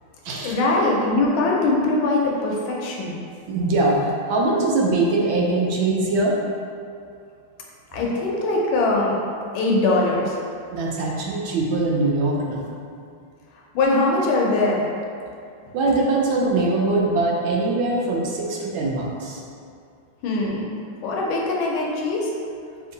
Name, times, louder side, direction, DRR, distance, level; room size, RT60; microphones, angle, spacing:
voice 1, 0.4-3.2 7.9-9.2 9.5-10.4 13.7-14.9 20.2-22.3, left 2 dB, 75° left, -2 dB, 1.4 m, -22 dB
voice 2, 3.5-6.4 10.7-12.7 15.7-19.4, right 2 dB, 75° right, -2 dB, 1.4 m, -22 dB
3.5 x 2.9 x 3.8 m, 2.4 s
omnidirectional pair, 2.3 m